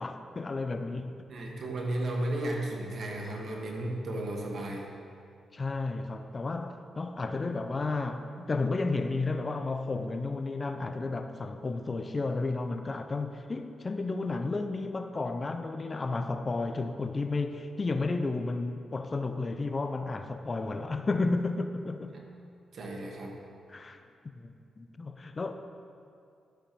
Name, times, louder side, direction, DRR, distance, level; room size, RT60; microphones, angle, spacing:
voice 1, 0.0-1.3 5.5-22.2 23.7-24.0 24.3-25.6, left 3 dB, 40° left, 8 dB, 0.6 m, -32 dB
voice 2, 1.3-4.9 22.1-22.2 22.7-23.3, right 1 dB, 60° right, 0 dB, 1.6 m, -34 dB
12.5 x 8.0 x 3.0 m, 2.4 s
hypercardioid pair, 45°, 0 cm